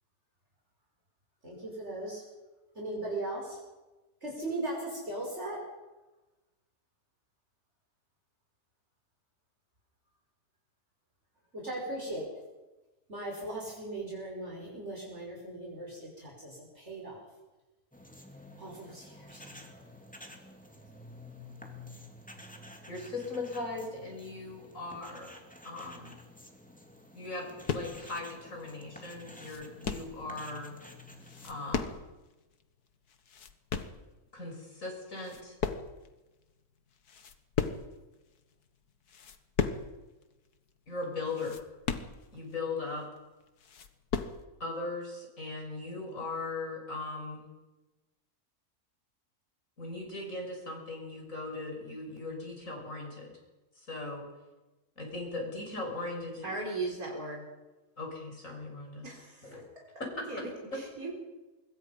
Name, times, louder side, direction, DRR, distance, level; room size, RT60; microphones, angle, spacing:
voice 1, 1.4-2.2 2.7-3.6 4.2-5.6 11.5-12.3 13.1-17.2 18.6-19.4, right 2 dB, 45° right, -3 dB, 6.0 m, -38 dB
sound 1, 17.9-31.8, left 1 dB, 5° left, 2.8 m, -51 dB
voice 2, 22.9-25.3 25.6-26.2 27.1-30.7 31.4-32.0 34.3-35.5 40.9-41.6 42.3-43.1 44.6-47.5 49.8-53.4 53.7-54.3 55.0-56.5 58.0-59.0 59.4-59.6 60.2-60.4, left 3 dB, 60° left, 1 dB, 7.0 m, -39 dB
sound 2, 27.7-28.1 28.6-28.7 29.1-30.2 31.2-32.2 32.5-32.6 33.1-34.0 34.6-34.9 35.1-36.2 36.5-36.6 37.0-38.0 38.5-38.7 39.1-40.0 40.2-40.3 40.7-40.8 41.2-42.5 43.0-43.1 43.4-44.4, left 6 dB, 85° left, 1.9 m, -35 dB
voice 3, 56.4-57.4 59.0-59.6 60.3-61.1, right 3 dB, 70° right, -1 dB, 4.4 m, -37 dB
25.5 x 22.5 x 5.7 m, 1.1 s
omnidirectional pair, 1.6 m